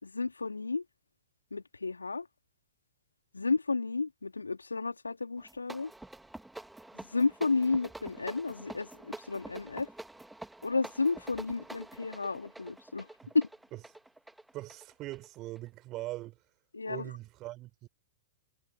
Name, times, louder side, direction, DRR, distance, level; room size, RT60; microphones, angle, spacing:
voice 1, 0.0-0.8 1.5-2.3 3.3-5.9 6.9-9.9 10.6-13.1 13.3-13.5 16.7-17.1, left 4 dB, 80° left, 2.3 m, -32 dB
sound 1, 5.4-15.7, right 2 dB, 5° right, 2.1 m, -47 dB
voice 2, 14.5-16.4 16.8-17.9, right 17 dB, 35° right, 5.8 m, -41 dB
figure-of-eight pair, 100°, 0 cm